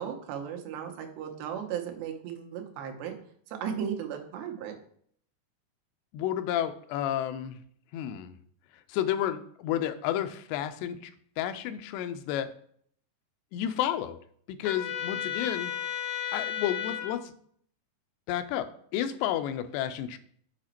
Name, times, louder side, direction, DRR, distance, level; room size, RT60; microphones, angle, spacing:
voice 1, 0.0-3.2 3.5-4.8, right 8 dB, 90° right, 3 dB, 3.1 m, -36 dB
voice 2, 6.1-7.6 7.9-8.4 8.9-11.1 11.4-12.5 13.5-14.2 14.5-15.7 16.3-17.3 18.3-20.2, left 11 dB, 90° left, 10 dB, 2.7 m, -31 dB
Trumpet, 14.6-17.1, left 10 dB, 70° left, 2.1 m, -33 dB
8.5 x 5.0 x 4.4 m, 0.63 s
omnidirectional pair, 4.7 m